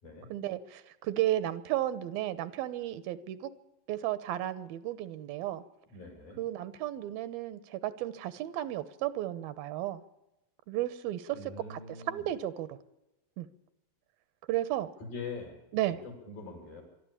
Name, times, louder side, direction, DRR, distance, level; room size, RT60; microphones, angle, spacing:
voice 1, 0.3-3.5 3.9-5.6 6.4-10.0 10.7-11.4 11.7-11.8 12.1-12.8 13.4-13.5 14.5-14.9 15.7-16.0, right 13 dB, 85° right, 15 dB, 2.9 m, -33 dB
voice 2, 5.9-6.4 11.3-12.3 15.0-15.6 16.0-16.8, left 4 dB, 75° left, 2 dB, 8.3 m, -43 dB
23.0 x 13.5 x 8.7 m, 0.93 s
omnidirectional pair, 4.2 m